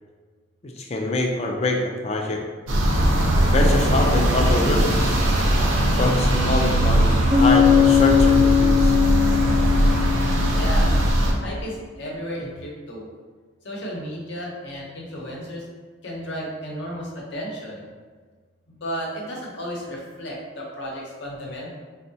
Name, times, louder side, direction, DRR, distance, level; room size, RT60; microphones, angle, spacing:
voice 1, 0.6-2.4 3.5-5.2 6.0-9.0, left 2 dB, 30° left, 1 dB, 0.3 m, -25 dB
sound 1, 2.7-11.3, right 1 dB, 85° right, 0.6 m, -20 dB
Bass guitar, 7.3-11.1, left 8 dB, 20° right, 0.5 m, -19 dB
voice 2, 10.5-11.0 11.4-13.1 13.6-15.7 16.0-17.9 18.7-21.7, equal, 60° left, -3 dB, 0.7 m, -33 dB
4.4 x 2.1 x 2.7 m, 1.5 s
head